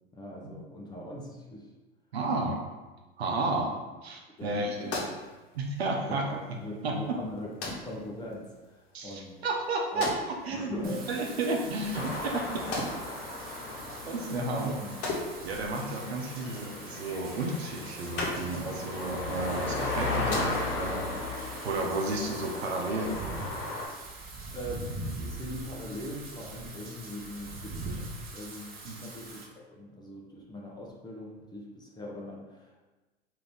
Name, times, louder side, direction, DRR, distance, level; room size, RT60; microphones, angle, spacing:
voice 1, 0.1-1.7 3.4-3.5 3.7-3.8 4.4-5.0 6.1-9.4 9.9-10.0 10.5-11.2 14.5-15.0 24.5-28.1 28.3-32.8, left 1 dB, 15° left, -3 dB, 0.6 m, -41 dB
voice 2, 2.1-2.6 3.2-3.8 4.0-5.0 5.5-6.2 6.8-7.0 8.9-10.7 11.1-12.6 14.0-14.7 15.4-21.1 21.6-23.2 28.8-29.0, right 2 dB, 90° right, 1 dB, 0.8 m, -32 dB
sound 1, 4.4-21.0, left 2 dB, 50° left, 1.1 m, -41 dB
Wind / Rain, 10.8-29.4, right 2 dB, 30° right, 0.9 m, -43 dB
sound 2, 11.9-23.9, left 2 dB, 70° left, 1.2 m, -36 dB
3.8 x 2.8 x 3.3 m, 1.2 s
hypercardioid pair, 95°, 30 cm